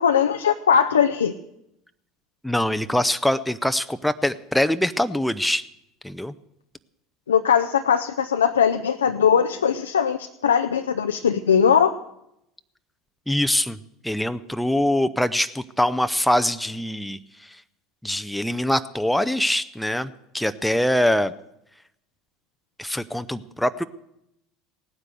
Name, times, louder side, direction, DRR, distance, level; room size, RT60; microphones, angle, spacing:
voice 1, 0.0-1.3 7.3-11.9, left 7 dB, 80° left, 7 dB, 0.6 m, -20 dB
voice 2, 2.4-5.6 6.0-6.3 13.3-13.8 14.0-17.6 18.0-21.3 22.8-23.8, left 1 dB, 5° left, 10 dB, 0.7 m, -23 dB
17.0 x 9.7 x 7.8 m, 0.80 s
figure-of-eight pair, 70°, 0 cm